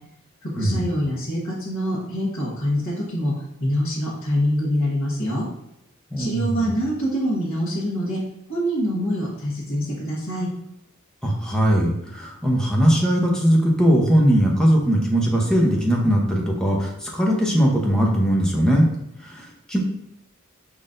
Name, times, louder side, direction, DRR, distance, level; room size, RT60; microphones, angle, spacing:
voice 1, 0.4-3.3 3.6-5.4 6.2-8.2 8.5-10.5, equal, 65° left, -9 dB, 1.3 m, -25 dB
voice 2, 6.1-6.7 11.2-18.9 19.2-19.8, equal, 5° left, -2 dB, 0.8 m, -20 dB
5.1 x 3.8 x 2.6 m, 0.83 s
head